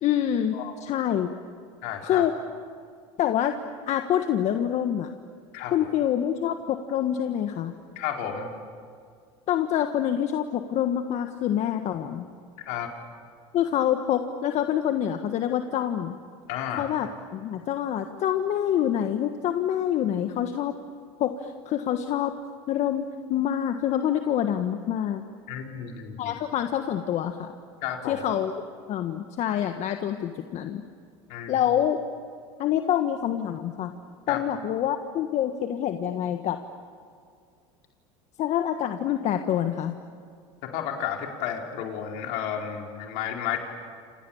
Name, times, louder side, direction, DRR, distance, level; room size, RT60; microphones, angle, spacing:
voice 1, 0.0-0.6 0.8-1.3 2.0-2.3 3.2-3.5 3.9-5.1 5.7-7.7 9.5-12.3 13.5-16.1 16.8-20.7 21.2-22.3 22.7-23.0 23.3-25.2 26.2-27.5 28.1-28.5 28.9-30.8 31.5-32.0 32.6-33.9 34.3-36.6 38.4-39.9, left 10 dB, 50° left, 6 dB, 1.5 m, -26 dB
voice 2, 1.8-2.3 5.5-5.7 8.0-8.5 12.6-12.9 16.5-16.9 25.5-26.4 27.8-28.3 31.3-31.6 34.3-34.4 40.6-43.6, left 9 dB, 70° left, 2 dB, 4.3 m, -32 dB
29.0 x 28.0 x 7.3 m, 2.2 s
supercardioid pair, 100°, 15 cm